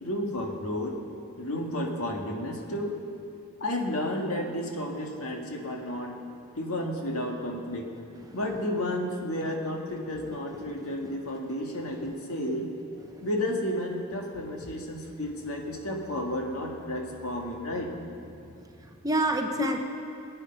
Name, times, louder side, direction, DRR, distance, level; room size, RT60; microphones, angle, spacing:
voice 1, 0.0-1.0 1.4-3.0 3.6-6.2 6.6-7.9 8.3-12.7 13.2-18.0 19.6-19.7, left 1 dB, 70° left, 1 dB, 1.8 m, -32 dB
voice 2, 10.5-11.2 13.0-13.3 14.6-14.7 18.8-19.9, right 2 dB, 15° right, 3 dB, 0.8 m, -31 dB
21.0 x 9.0 x 5.7 m, 2.7 s
head